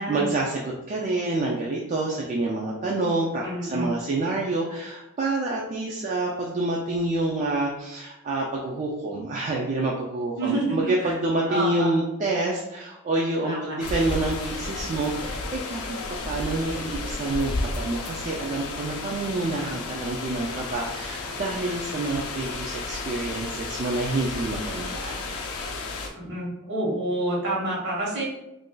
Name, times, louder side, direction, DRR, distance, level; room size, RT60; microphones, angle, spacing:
voice 1, 0.0-16.0 16.3-25.2, right 2 dB, 35° right, -2 dB, 0.3 m, -27 dB
voice 2, 3.4-3.9 10.4-11.2 11.5-12.0 13.4-13.8 26.1-28.2, right 1 dB, 55° right, -4 dB, 1.1 m, -28 dB
sound 1, 13.8-26.1, left 3 dB, 85° left, 0.5 m, -33 dB
2.5 x 2.3 x 3.7 m, 0.92 s
head